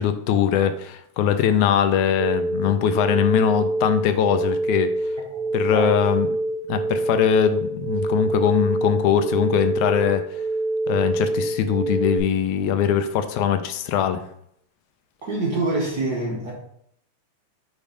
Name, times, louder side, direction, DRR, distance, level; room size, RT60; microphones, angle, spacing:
voice 1, 0.0-4.9 5.5-6.3 6.7-10.2 10.9-14.2, left 9 dB, 85° left, 9 dB, 2.0 m, -21 dB
sound 1, 2.2-12.2, right 2 dB, 85° right, 2.4 m, -25 dB
voice 2, 15.2-16.5, right 2 dB, 65° right, -4 dB, 1.0 m, -25 dB
6.8 x 3.1 x 5.0 m, 0.69 s
omnidirectional pair, 3.3 m